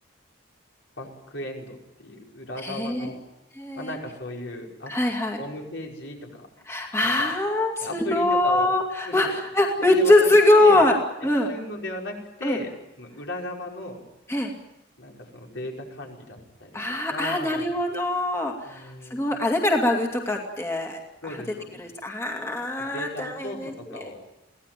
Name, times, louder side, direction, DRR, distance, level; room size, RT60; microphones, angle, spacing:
voice 1, 1.0-3.2 3.8-4.9 5.4-6.5 7.0-7.4 7.8-8.7 9.0-9.4 9.8-10.3 10.6-10.9 11.2-14.0 15.0-17.7 18.6-19.4 21.2-21.7 22.9-24.2, left 1 dB, 70° left, 0 dB, 5.3 m, -36 dB
voice 2, 2.6-3.1 3.6-3.9 4.9-5.4 6.7-11.0 11.2-11.5 12.4-12.6 14.3-14.5 16.7-21.0 21.8-23.7 24.0-24.1, left 1 dB, 15° left, 1 dB, 2.4 m, -22 dB
24.0 x 17.5 x 9.1 m, 0.92 s
head